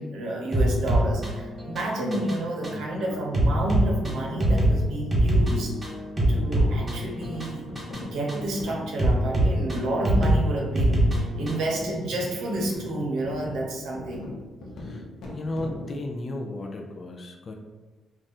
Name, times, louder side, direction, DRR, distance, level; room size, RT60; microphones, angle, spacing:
voice 1, 0.0-5.7 6.3-14.3, right 1 dB, 80° right, -1 dB, 0.8 m, -30 dB
sound 1, 0.5-11.7, right 1 dB, 25° right, 1.3 m, -24 dB
voice 2, 2.5-3.2 14.8-15.0 15.3-17.5, left 2 dB, 40° left, 3 dB, 0.4 m, -34 dB
sound 2, 6.3-16.0, left 2 dB, 70° left, 0.8 m, -39 dB
2.5 x 2.4 x 4.0 m, 1.3 s
cardioid pair, 90°, 0 cm